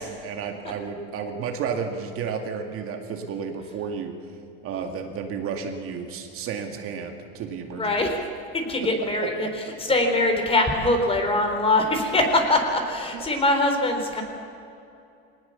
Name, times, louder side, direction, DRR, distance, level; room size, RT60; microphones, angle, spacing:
voice 1, 0.0-4.1 4.6-7.9 9.0-9.5 13.1-13.2, right 6 dB, 50° right, 4 dB, 2.3 m, -32 dB
voice 2, 7.8-8.3 8.5-14.2, left 2 dB, 20° left, 4 dB, 3.7 m, -23 dB
23.0 x 19.5 x 7.2 m, 2.6 s
supercardioid pair, 125°, 30 cm